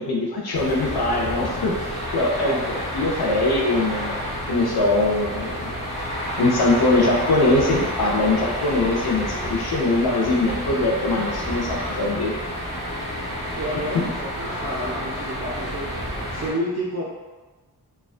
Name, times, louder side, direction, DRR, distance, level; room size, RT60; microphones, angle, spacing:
voice 1, 0.0-1.7 2.1-5.7 6.4-12.3, left 2 dB, 70° left, -2 dB, 0.6 m, -22 dB
sound 1, 0.5-16.5, equal, 15° left, 0.7 m, -29 dB
voice 2, 13.6-15.9 16.3-17.0, equal, 45° right, -4 dB, 0.4 m, -30 dB
2.3 x 2.2 x 2.4 m, 1.3 s
wide cardioid pair, 50°, 39 cm